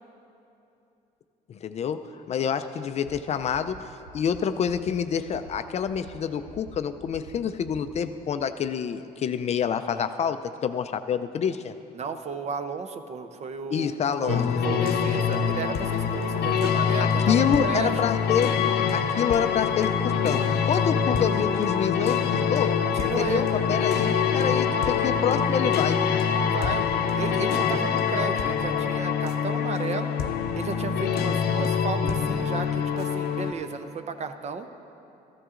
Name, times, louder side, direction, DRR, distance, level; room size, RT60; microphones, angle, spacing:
voice 1, 1.5-11.7 13.7-14.4 17.0-18.5 18.9-22.8 23.2-26.0, left 7 dB, 40° left, 10 dB, 0.4 m, -27 dB
sound 1, 3.0-3.1 3.4-3.7 4.0-4.3 4.6-4.9 5.2-5.5 5.8-6.1 6.4-6.7 7.0-7.3 7.6-7.9, right 5 dB, 85° right, 1.8 m, -47 dB
voice 2, 11.9-13.9 14.2-18.0 22.9-23.5 24.6-25.0 26.4-26.9 27.2-30.1 30.6-34.7, right 5 dB, 40° right, 8 dB, 0.6 m, -34 dB
sound 2, 14.3-33.5, left 7 dB, 70° left, 0.7 m, -25 dB
14.5 x 13.0 x 2.5 m, 2.8 s
cardioid pair, 110°, 17 cm